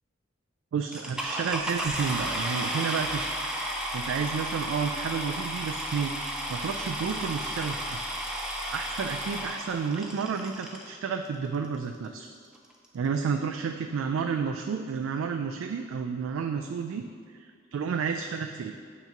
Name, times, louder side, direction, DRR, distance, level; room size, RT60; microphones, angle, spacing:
voice 1, 0.7-3.2 3.9-6.1 6.5-8.0 8.7-12.3 12.9-18.8, right 6 dB, 85° right, 5 dB, 0.3 m, -31 dB
sound 1, 0.9-10.9 11.6-11.7 12.2-12.3 12.5-12.9, right 1 dB, 5° right, 0.4 m, -33 dB
8.0 x 3.0 x 5.8 m, 2.1 s
head